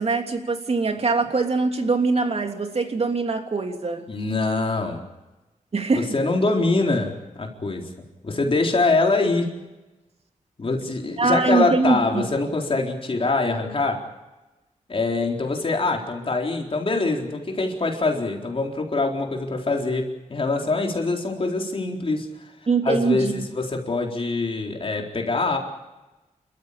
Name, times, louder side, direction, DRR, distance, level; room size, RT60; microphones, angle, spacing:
voice 1, 0.0-4.0 5.7-6.1 11.2-12.3 22.7-23.5, right 4 dB, 50° right, 4 dB, 3.0 m, -23 dB
voice 2, 4.1-5.0 5.9-7.9 8.2-9.5 10.6-14.0 14.9-22.5 22.8-25.6, left 3 dB, 45° left, 1 dB, 4.1 m, -24 dB
29.5 x 14.0 x 8.7 m, 1.1 s
wide cardioid pair, 105°, 14 cm